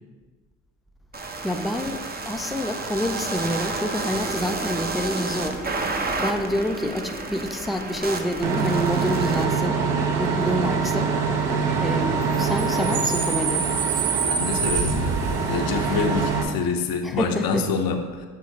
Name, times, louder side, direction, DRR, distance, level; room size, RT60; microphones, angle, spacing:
sound 1, 1.1-9.4, right 3 dB, 20° right, 0.8 m, -30 dB
voice 1, 1.4-5.6 6.2-9.8 10.2-11.2 11.8-13.7 17.0-17.7, equal, ahead, 5 dB, 0.4 m, -27 dB
Bus / Idling / Screech, 8.4-16.4, right 5 dB, 65° right, 1.3 m, -24 dB
voice 2, 14.3-18.3, left 5 dB, 55° left, 5 dB, 0.9 m, -27 dB
7.1 x 7.0 x 3.0 m, 1.4 s
hypercardioid pair, 65°, 43 cm